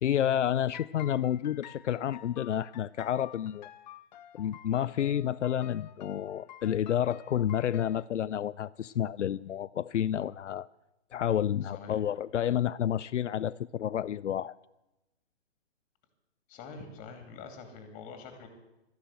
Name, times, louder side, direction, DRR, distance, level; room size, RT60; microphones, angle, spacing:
voice 1, 0.0-3.7 4.3-10.7 11.1-14.6, left 10 dB, 85° left, 15 dB, 0.5 m, -30 dB
sound 1, 0.7-8.1, left 11 dB, 40° left, 0.7 m, -50 dB
voice 2, 11.6-12.0 16.5-18.5, left 5 dB, 20° left, 6 dB, 2.6 m, -45 dB
13.0 x 10.5 x 7.6 m, 0.95 s
hypercardioid pair, 140°, 35 cm